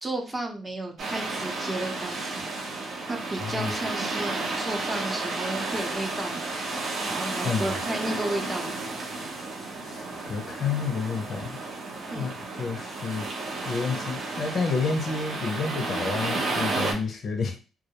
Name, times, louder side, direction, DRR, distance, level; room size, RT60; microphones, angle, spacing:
voice 1, 0.0-2.5 3.1-8.7 12.1-12.3, right 1 dB, 20° right, 2 dB, 0.6 m, -33 dB
sound 1, 1.0-16.9, right 3 dB, 65° right, 0.7 m, -32 dB
voice 2, 3.4-3.7 7.4-7.6 9.8-11.6 12.1-12.3 12.6-13.3 13.6-17.6, left 4 dB, 55° left, 5 dB, 0.5 m, -29 dB
2.2 x 2.0 x 2.8 m, 0.34 s
cardioid pair, 90°, 0 cm